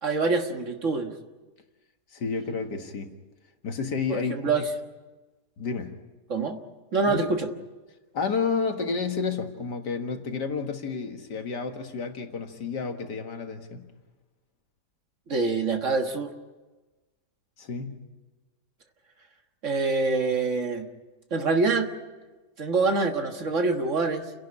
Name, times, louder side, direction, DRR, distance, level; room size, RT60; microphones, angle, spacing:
voice 1, 0.0-1.1 4.1-4.7 6.3-6.6 6.9-7.5 15.3-16.3 19.6-20.9 21.3-21.9 22.6-24.3, right 3 dB, 50° right, 5 dB, 1.8 m, -25 dB
voice 2, 2.1-3.1 3.6-4.6 5.6-5.9 7.1-7.3 8.1-13.8 17.6-18.0, left 5 dB, 80° left, 5 dB, 2.3 m, -30 dB
29.5 x 11.5 x 9.8 m, 1.2 s
omnidirectional pair, 1.8 m